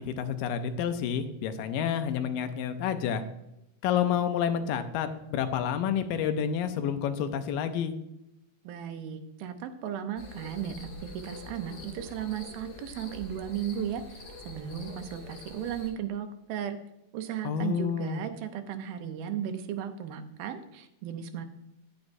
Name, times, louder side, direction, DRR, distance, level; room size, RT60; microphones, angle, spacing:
voice 1, 0.1-3.2 3.8-7.9 17.4-18.2, left 8 dB, 80° left, 8 dB, 2.3 m, -29 dB
voice 2, 8.6-16.8 17.1-21.5, right 9 dB, 85° right, 8 dB, 2.7 m, -35 dB
sound 1, 10.2-15.9, left 3 dB, 60° left, 3.3 m, -45 dB
9.7 x 9.2 x 2.6 m, 0.87 s
omnidirectional pair, 4.2 m